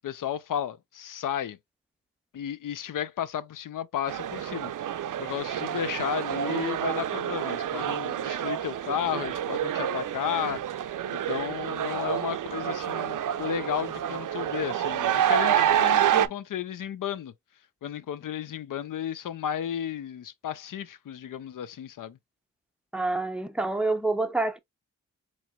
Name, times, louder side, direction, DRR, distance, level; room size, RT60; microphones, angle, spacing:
voice 1, 0.0-1.6 2.3-10.6 11.1-17.3 17.8-22.2, left 9 dB, 75° left, 0.5 m, -33 dB
sound 1, 4.1-16.3, right 10 dB, 75° right, 0.5 m, -28 dB
voice 2, 22.9-24.6, right 2 dB, 5° right, 0.6 m, -27 dB
4.3 x 3.0 x 2.2 m
cardioid pair, 70°, 32 cm